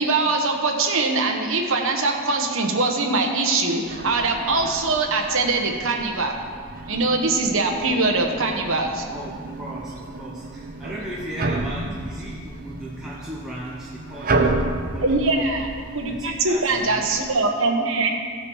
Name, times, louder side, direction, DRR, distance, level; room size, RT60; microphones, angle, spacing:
voice 1, 0.0-6.3 6.9-9.0 15.0-15.7 15.9-18.2, right 3 dB, 65° right, 2 dB, 1.2 m, -22 dB
sound 1, 3.8-17.4, right 2 dB, 40° right, 0.7 m, -31 dB
voice 2, 9.6-15.5 16.0-17.1, right 1 dB, 5° right, -6 dB, 0.8 m, -36 dB
15.5 x 5.9 x 4.8 m, 2.1 s
head